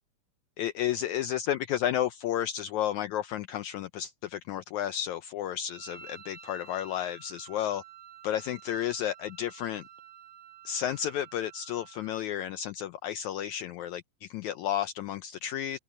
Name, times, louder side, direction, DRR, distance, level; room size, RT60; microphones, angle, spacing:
voice 1, 0.6-7.8 8.2-9.8 10.7-15.8, left 11 dB, 75° left, 1.8 m, -32 dB
Wind instrument woodwind instrument, 5.7-12.3, right 8 dB, 50° right, 5.6 m, -51 dB
omnidirectional pair, 3.9 m